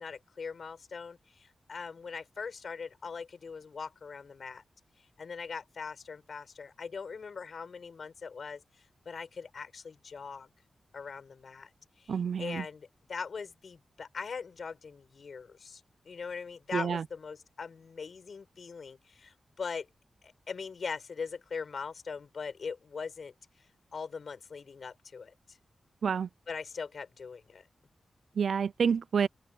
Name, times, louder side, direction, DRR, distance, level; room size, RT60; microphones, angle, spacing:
voice 1, 0.0-4.6 5.2-8.6 9.1-10.5 10.9-11.7 12.0-19.9 20.2-23.3 23.9-25.6 26.5-27.7, left 5 dB, 65° left, 7.1 m, -41 dB
voice 2, 12.1-12.6 16.7-17.0 26.0-26.3 28.4-29.3, right 6 dB, 75° right, 0.3 m, -28 dB
open air
cardioid pair, 65°, 0 cm